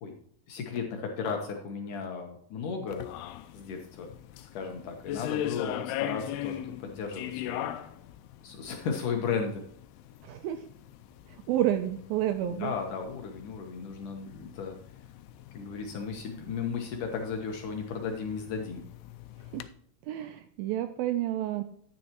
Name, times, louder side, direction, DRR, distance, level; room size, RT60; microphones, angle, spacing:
voice 1, 0.5-3.0 3.5-4.1 4.4-7.7 8.4-9.6 12.6-14.8 15.5-18.9, left 5 dB, 65° left, 3 dB, 2.2 m, -35 dB
sound 1, 2.9-19.7, left 12 dB, 85° left, 2.6 m, -41 dB
voice 2, 10.2-10.6 11.5-12.7 19.5-19.6 20.1-21.6, right 12 dB, 80° right, 9 dB, 2.1 m, -30 dB
10.5 x 9.5 x 3.0 m, 0.63 s
omnidirectional pair, 4.7 m